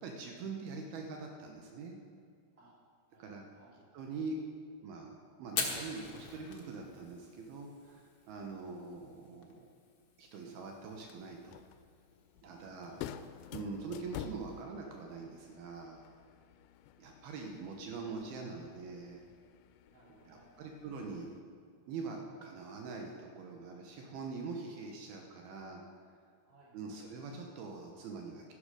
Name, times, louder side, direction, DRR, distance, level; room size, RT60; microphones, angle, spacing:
voice 1, 0.0-2.0 3.2-3.4 3.9-4.4 4.8-9.7 10.2-11.6 12.4-12.9 13.5-16.0 17.0-19.2 20.3-21.3 21.9-25.8 26.7-28.5, right 4 dB, 80° right, 2 dB, 3.0 m, -43 dB
voice 2, 3.1-3.8 12.4-12.5 12.9-13.0 19.9-20.7 26.4-27.0, right 2 dB, 20° right, -7 dB, 3.7 m, -62 dB
Fire, 5.4-14.6, left 5 dB, 60° left, 1.3 m, -45 dB
sound 1, 10.9-21.4, left 10 dB, 80° left, 2.2 m, -50 dB
12.5 x 12.0 x 5.1 m, 2.2 s
omnidirectional pair, 4.5 m